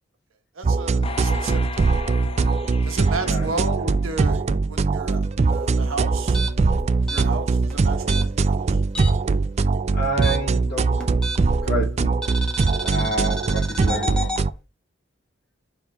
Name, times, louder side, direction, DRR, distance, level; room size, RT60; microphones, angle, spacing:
voice 1, 0.5-1.7 2.1-2.3 2.8-6.4 7.1-8.8, right 3 dB, 85° right, 1.3 m, -33 dB
sound 1, 0.6-14.5, right 3 dB, 35° right, 0.3 m, -21 dB
sound 2, 1.0-4.5 5.0-5.1, left 4 dB, 30° left, 0.5 m, -37 dB
voice 2, 3.2-3.5 9.9-11.0 11.6-12.2 12.8-14.3, right 1 dB, 50° left, 1.3 m, -28 dB
sound 3, 6.2-9.4 9.6-11.7 12.2-14.4, right 1 dB, 5° left, 1.1 m, -32 dB
7.4 x 3.6 x 3.5 m
head